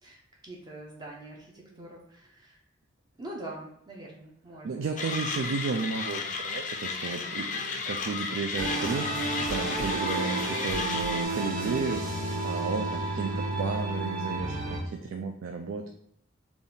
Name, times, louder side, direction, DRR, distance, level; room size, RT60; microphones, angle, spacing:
voice 1, 0.0-2.6 3.2-5.2, right 1 dB, 20° right, -2 dB, 0.5 m, -44 dB
voice 2, 4.6-15.9, right 4 dB, 80° right, 4 dB, 0.4 m, -33 dB
Mechanisms, 5.0-11.2, left 4 dB, 40° left, 0.4 m, -34 dB
sound 1, 8.6-14.8, right 2 dB, 40° right, 0.9 m, -31 dB
3.5 x 2.4 x 3.9 m, 0.73 s
head